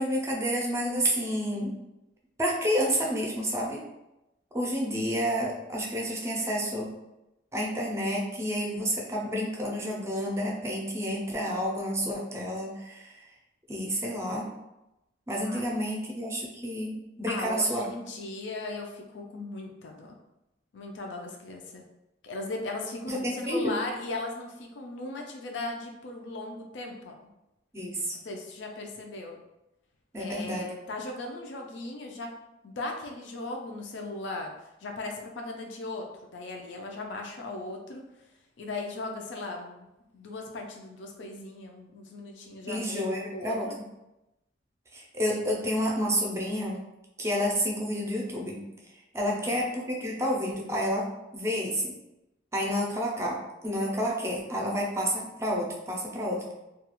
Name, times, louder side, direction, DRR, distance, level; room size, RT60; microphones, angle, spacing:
voice 1, 0.0-1.7 2.4-3.8 4.5-6.9 7.5-13.2 13.7-14.5 15.3-17.9 23.1-23.8 27.7-28.2 30.1-30.7 42.7-43.7 44.9-46.8 47.2-48.6 49.1-51.9 52.5-56.5, equal, 15° right, -2 dB, 0.4 m, -30 dB
voice 2, 17.3-20.2 20.7-21.8 22.2-27.3 28.2-29.4 30.2-32.3 32.6-34.5 34.8-38.1 38.6-39.9 40.1-43.7 49.3-49.6, left 2 dB, 80° left, 2 dB, 0.4 m, -38 dB
2.3 x 2.3 x 2.9 m, 0.93 s
head